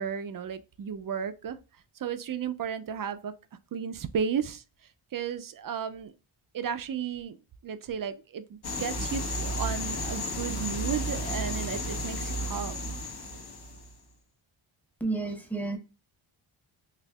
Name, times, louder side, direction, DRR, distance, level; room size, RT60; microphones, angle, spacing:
voice 1, 0.0-1.6 2.0-3.3 3.7-4.6 5.1-6.1 6.5-7.4 7.6-13.0, right 7 dB, 45° right, 0.4 m, -34 dB
sound 1, 8.6-13.9, equal, 50° left, 0.9 m, -33 dB
voice 2, 15.0-15.8, right 3 dB, 5° left, 0.8 m, -31 dB
4.2 x 2.7 x 2.3 m
wide cardioid pair, 110°, 49 cm